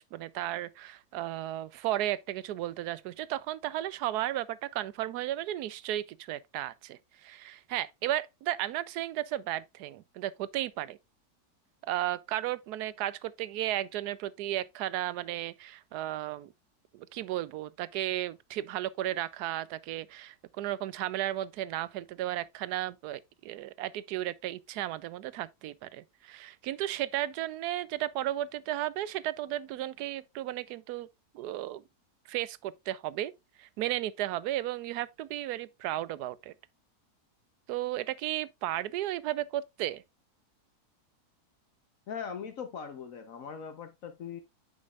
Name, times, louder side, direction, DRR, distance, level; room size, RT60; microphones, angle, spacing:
voice 1, 0.0-11.0 11.8-16.5 16.9-31.1 31.3-31.8 32.3-33.3 33.6-36.5 37.7-40.0, right 13 dB, 85° right, 1.1 m, -34 dB
voice 2, 42.1-44.4, left 7 dB, 65° left, 1.2 m, -40 dB
9.6 x 5.3 x 2.4 m
omnidirectional pair, 1.6 m